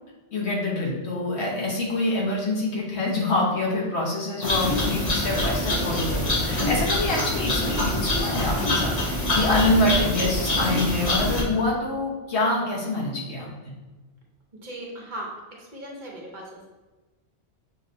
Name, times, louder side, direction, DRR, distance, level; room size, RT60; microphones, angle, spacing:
voice 1, 0.3-13.7, left 2 dB, 75° left, -3 dB, 1.3 m, -26 dB
sound 1, 4.4-11.4, left 1 dB, 40° left, 1.0 m, -25 dB
voice 2, 14.6-16.7, right 1 dB, 45° right, -3 dB, 1.0 m, -38 dB
6.2 x 3.1 x 2.7 m, 1.2 s
omnidirectional pair, 1.2 m